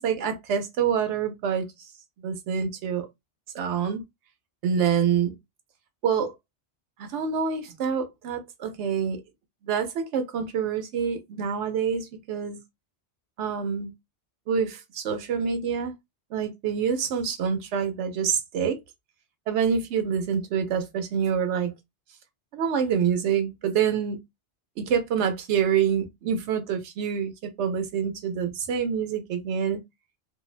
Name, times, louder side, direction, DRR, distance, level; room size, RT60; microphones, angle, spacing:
voice 1, 0.0-1.7 2.2-3.1 3.5-4.0 4.6-5.3 6.0-6.3 7.0-9.2 9.6-12.6 13.4-13.9 14.5-15.9 16.3-18.8 19.5-21.7 22.5-24.2 24.8-27.3 27.6-29.8, right 7 dB, 85° right, 0.9 m, -26 dB
2.5 x 2.1 x 2.3 m
omnidirectional pair, 1.2 m